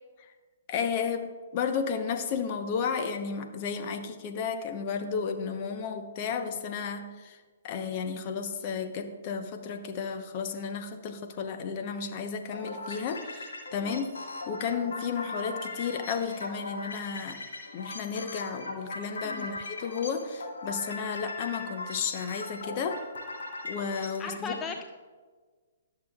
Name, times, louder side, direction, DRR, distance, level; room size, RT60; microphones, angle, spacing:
voice 1, 0.7-7.4 7.6-14.1 14.5-17.4 17.7-23.0 23.6-24.5, left 6 dB, 40° left, 6 dB, 1.0 m, -33 dB
sound 1, 12.5-24.3, left 2 dB, 75° left, 1.9 m, -39 dB
voice 2, 24.2-24.8, left 5 dB, 20° left, 4 dB, 0.5 m, -37 dB
20.0 x 6.8 x 2.4 m, 1.5 s
figure-of-eight pair, 130°, 0 cm